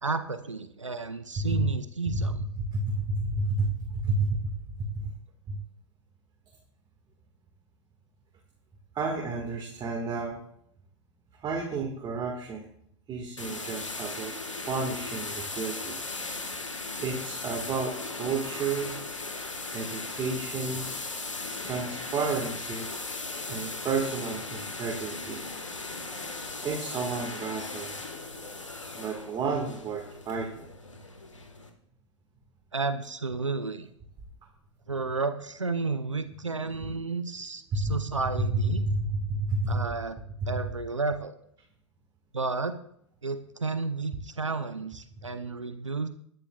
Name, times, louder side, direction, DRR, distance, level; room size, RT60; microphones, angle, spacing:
voice 1, 0.0-2.4 32.7-33.9 34.9-38.8 39.7-40.2 40.5-41.3 42.3-42.7 43.2-46.1, right 4 dB, 90° right, 10 dB, 0.8 m, -32 dB
voice 2, 1.4-1.7 2.1-5.1 5.5-5.6 8.9-10.4 11.4-12.7 13.1-14.3 14.7-16.0 17.0-18.9 19.7-20.9 21.6-22.9 23.5-25.4 26.6-28.0 28.9-30.7 37.7-38.0 38.5-39.8, right 3 dB, 30° right, 0 dB, 1.9 m, -31 dB
sound 1, 13.4-31.7, left 3 dB, 90° left, 1.6 m, -37 dB
21.0 x 11.0 x 2.4 m, 0.70 s
figure-of-eight pair, 95°, 15 cm